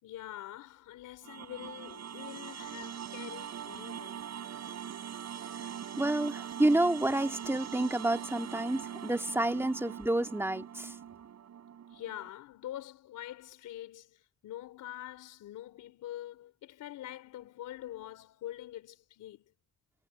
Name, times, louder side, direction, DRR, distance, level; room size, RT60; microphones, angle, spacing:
voice 1, 0.0-4.3 11.9-19.5, left 13 dB, 85° left, 3.8 m, -45 dB
sound 1, 1.2-12.3, right 8 dB, 60° right, 7.0 m, -42 dB
voice 2, 6.0-10.9, right 1 dB, 10° right, 2.1 m, -29 dB
cardioid pair, 90°, 30 cm